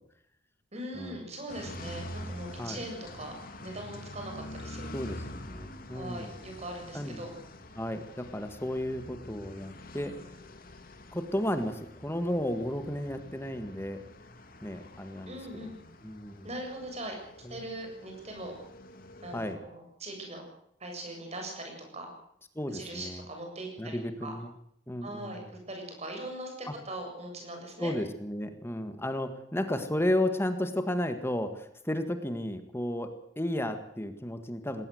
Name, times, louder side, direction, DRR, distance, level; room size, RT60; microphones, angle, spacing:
voice 1, 0.7-4.9 5.9-7.3 15.3-15.7 16.4-17.2 17.5-18.5 19.2-20.4 20.8-22.1 22.7-24.4 25.0-27.9, right 1 dB, 35° right, 2 dB, 7.6 m, -41 dB
sound 1, 1.5-19.6, left 1 dB, 50° left, 2.6 m, -46 dB
voice 2, 2.2-2.8 4.9-6.3 6.9-7.2 7.8-10.1 11.1-14.0 14.6-15.7 16.0-16.5 17.4-17.6 19.3-19.6 22.6-23.2 23.8-24.5 24.9-25.5 26.7-26.8 27.8-33.1 33.4-34.9, left 1 dB, 15° left, 8 dB, 1.8 m, -33 dB
20.0 x 18.0 x 7.9 m, 0.72 s
head